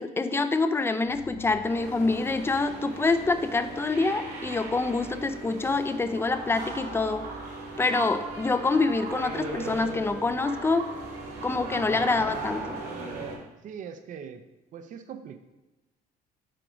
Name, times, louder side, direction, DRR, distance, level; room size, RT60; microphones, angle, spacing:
voice 1, 0.0-7.3 7.8-10.9 11.4-12.8, left 3 dB, 15° left, 10 dB, 0.4 m, -26 dB
sound 1, 1.0-5.1, left 5 dB, 50° left, 0.9 m, -48 dB
sound 2, 1.7-13.4, right 3 dB, 75° right, 1.9 m, -37 dB
voice 2, 13.6-14.4 14.7-15.4, right 7 dB, 50° right, 9 dB, 0.5 m, -41 dB
7.6 x 2.5 x 4.9 m, 1.0 s
cardioid pair, 110°, 17 cm